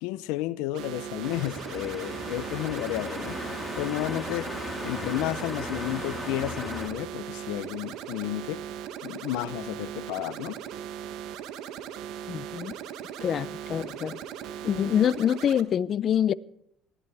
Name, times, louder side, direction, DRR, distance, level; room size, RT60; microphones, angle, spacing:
voice 1, 0.0-3.5 3.7-4.5 4.8-8.6 9.0-10.6, left 16 dB, 85° left, 0.7 m, -32 dB
sound 1, 0.7-15.6, right 9 dB, 70° right, 1.3 m, -39 dB
sound 2, 1.2-6.9, left 1 dB, ahead, 4.2 m, -36 dB
voice 2, 12.3-12.7 13.2-14.2 14.6-16.3, left 9 dB, 45° left, 0.6 m, -25 dB
19.5 x 14.5 x 3.5 m
cardioid pair, 110°, 0 cm